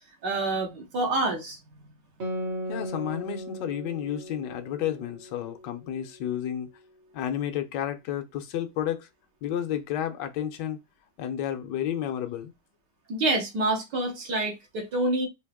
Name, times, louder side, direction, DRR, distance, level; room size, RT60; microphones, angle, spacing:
voice 1, 0.2-1.6 13.1-15.3, right 2 dB, 75° right, 1.9 m, -27 dB
Guitar, 2.2-7.1, equal, 45° right, 1.1 m, -38 dB
voice 2, 2.7-6.7 7.1-9.1 9.4-10.8 11.2-12.5, left 10 dB, 80° left, 1.3 m, -31 dB
4.6 x 2.9 x 3.5 m
omnidirectional pair, 1.9 m